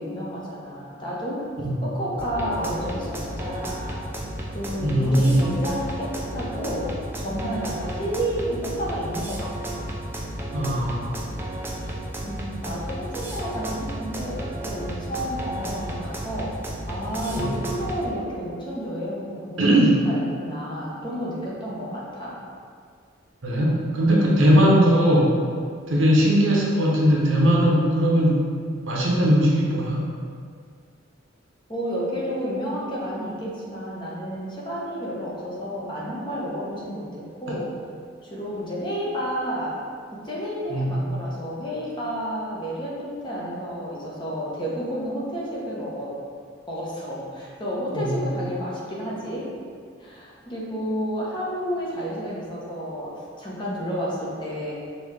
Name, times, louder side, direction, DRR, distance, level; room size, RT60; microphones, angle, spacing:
voice 1, 0.0-1.5 1.8-4.0 4.5-6.9 7.2-9.8 12.2-16.5 16.9-19.7 20.1-22.4 31.7-37.1 37.4-37.7 38.2-39.7 40.1-46.2 46.7-49.5 50.0-53.1 53.4-54.7, equal, 25° left, -6 dB, 0.9 m, -31 dB
sound 1, 2.2-18.0, right 1 dB, 10° right, 0.4 m, -33 dB
voice 2, 4.8-5.4 10.5-11.3 17.4-17.5 19.6-20.0 23.4-25.3 25.9-28.5 28.8-30.1 40.7-40.9 47.9-48.2, equal, 80° right, -3 dB, 0.9 m, -19 dB
5.4 x 2.9 x 3.3 m, 2.1 s
head